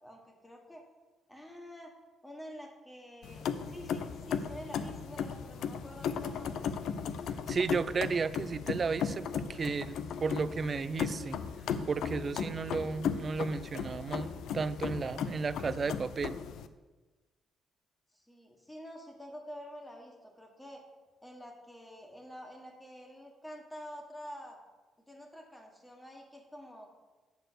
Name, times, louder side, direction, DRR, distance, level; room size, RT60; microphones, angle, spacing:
voice 1, 0.0-0.8 1.3-1.9 2.2-6.7 18.1-20.8 21.2-24.6 25.0-26.9, equal, 10° left, 2 dB, 1.6 m, -48 dB
sound 1, 3.2-16.7, left 7 dB, 75° left, 0.4 m, -36 dB
voice 2, 7.5-11.4 11.9-16.4, right 4 dB, 40° right, 16 dB, 0.3 m, -33 dB
8.1 x 4.5 x 6.3 m, 1.2 s
cardioid pair, 90°, 0 cm